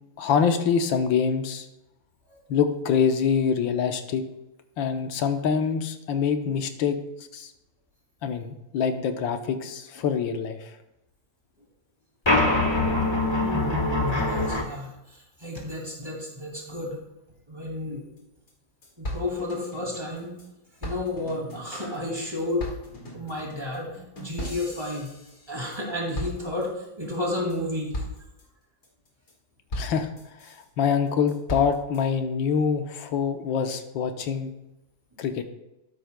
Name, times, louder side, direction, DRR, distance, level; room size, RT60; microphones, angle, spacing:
voice 1, 0.2-1.7 2.5-4.2 4.8-7.0 7.3-7.5 8.2-10.7 29.8-30.1 30.8-34.5 35.2-35.4, left 6 dB, 80° left, 7 dB, 1.6 m, -25 dB
sound 1, 12.3-14.6, left 2 dB, 15° left, 1.0 m, -23 dB
voice 2, 13.4-17.0 17.5-18.0 19.0-20.4 20.8-22.7 23.1-25.1 25.5-28.0 29.8-29.9 35.2-35.3, left 2 dB, 15° right, -2 dB, 2.3 m, -32 dB
sound 2, 18.2-18.3 18.5-18.6 18.8-20.5 20.8-25.8 26.1-26.9 27.3-27.6 27.9-28.4 28.8-29.3 29.7-30.6 31.1-32.0, left 1 dB, 35° left, 1.9 m, -37 dB
13.0 x 10.5 x 2.2 m, 0.92 s
omnidirectional pair, 2.1 m